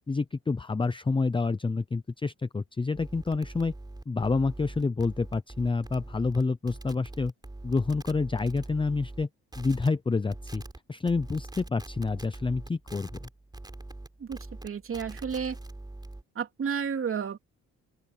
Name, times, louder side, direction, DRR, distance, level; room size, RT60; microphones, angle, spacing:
voice 1, 0.1-3.7 4.1-7.3 7.6-9.3 9.6-10.6 10.9-13.3, left 4 dB, 15° left, 0.7 m, -28 dB
sound 1, 2.9-9.2 9.5-9.9 10.3-10.8 11.1-16.2, right 2 dB, 15° right, 4.3 m, -43 dB
voice 2, 14.6-15.6 16.3-17.4, right 7 dB, 45° right, 2.9 m, -31 dB
open air
cardioid pair, 90°, 30 cm